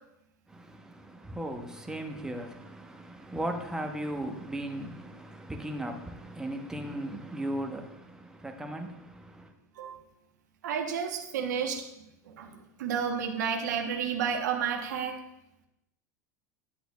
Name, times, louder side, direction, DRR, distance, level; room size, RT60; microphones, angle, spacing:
voice 1, 0.5-9.5, right 1 dB, 5° right, 0.9 m, -37 dB
voice 2, 10.6-11.8 12.4-12.5 12.8-15.2, right 7 dB, 75° right, 1.0 m, -31 dB
10.0 x 7.9 x 2.3 m
hypercardioid pair, 90°, 10 cm